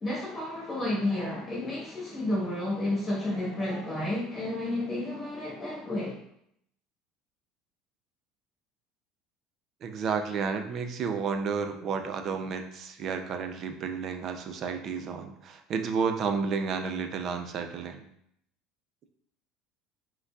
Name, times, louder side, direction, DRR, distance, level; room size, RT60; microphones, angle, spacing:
voice 1, 0.0-6.2, left 1 dB, 25° left, -7 dB, 1.3 m, -31 dB
voice 2, 9.8-18.1, right 5 dB, 40° right, 7 dB, 0.5 m, -31 dB
5.1 x 3.8 x 2.4 m, 0.72 s
cardioid pair, 140°, 0 cm